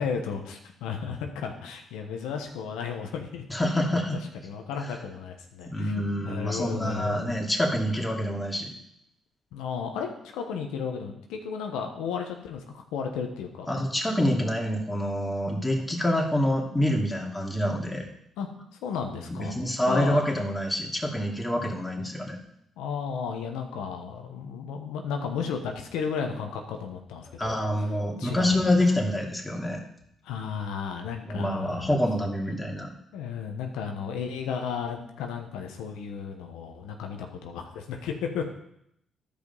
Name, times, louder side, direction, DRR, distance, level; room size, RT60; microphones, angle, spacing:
voice 1, 0.0-3.5 3.9-4.0 4.4-7.4 9.5-13.7 18.4-18.5 18.8-19.6 19.9-20.2 22.8-27.9 28.2-28.7 30.2-31.9 33.1-38.5, left 6 dB, 85° left, 3 dB, 1.1 m, -34 dB
voice 2, 3.5-4.2 5.7-8.8 13.7-18.0 19.3-22.4 27.4-29.8 31.2-32.9, left 1 dB, 15° left, 0 dB, 2.5 m, -26 dB
11.5 x 5.2 x 5.4 m, 0.75 s
supercardioid pair, 55°, 0 cm